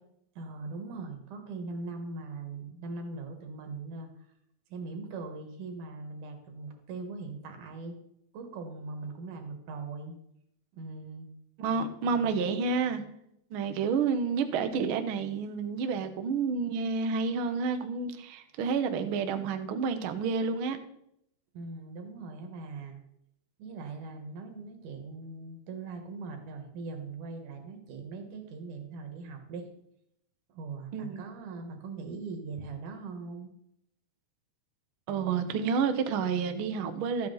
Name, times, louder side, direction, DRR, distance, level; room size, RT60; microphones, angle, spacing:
voice 1, 0.4-4.1 4.7-8.0 8.3-10.2 10.7-11.3 21.5-23.0 23.6-29.7 30.5-33.5, right 3 dB, 90° right, 5 dB, 3.0 m, -40 dB
voice 2, 11.6-13.0 13.5-20.8 30.9-31.2 35.1-37.3, right 5 dB, 70° right, 7 dB, 1.2 m, -29 dB
13.0 x 8.4 x 3.9 m, 0.76 s
omnidirectional pair, 3.5 m